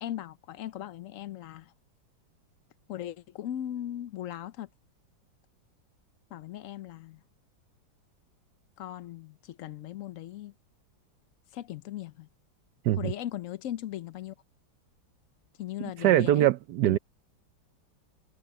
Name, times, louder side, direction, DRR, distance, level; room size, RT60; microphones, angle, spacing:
voice 1, 0.0-1.7 2.9-4.7 6.3-7.2 8.8-10.5 11.5-12.3 12.9-14.3 15.6-16.5 16.8-17.0, left 12 dB, 70° left, 0.7 m, -38 dB
voice 2, 16.0-17.0, right 13 dB, 70° right, 1.1 m, -22 dB
omnidirectional pair, 2.1 m